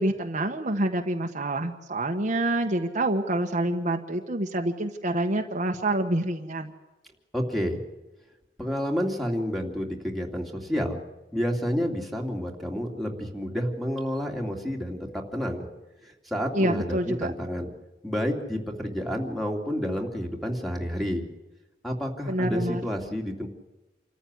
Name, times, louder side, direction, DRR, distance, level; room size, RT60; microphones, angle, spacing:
voice 1, 0.0-6.7 16.5-17.3 22.3-22.8, right 1 dB, 40° right, 3 dB, 1.3 m, -27 dB
voice 2, 7.3-7.8 8.6-11.0 11.3-15.7 16.0-17.7 18.0-21.3 21.8-23.5, equal, ahead, 1 dB, 2.7 m, -29 dB
27.5 x 14.0 x 9.7 m, 1.1 s
head